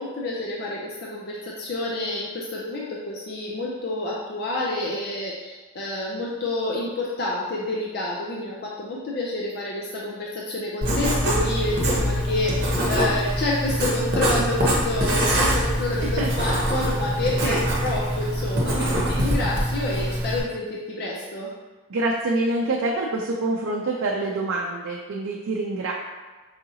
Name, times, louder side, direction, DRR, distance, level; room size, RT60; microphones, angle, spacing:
voice 1, 0.0-21.5, left 2 dB, 50° left, -4 dB, 0.4 m, -28 dB
Writing, 10.8-20.4, equal, 50° right, 0.8 m, -24 dB
voice 2, 21.9-25.9, right 2 dB, 85° right, -2 dB, 0.4 m, -26 dB
4.8 x 2.7 x 2.7 m, 1.3 s
head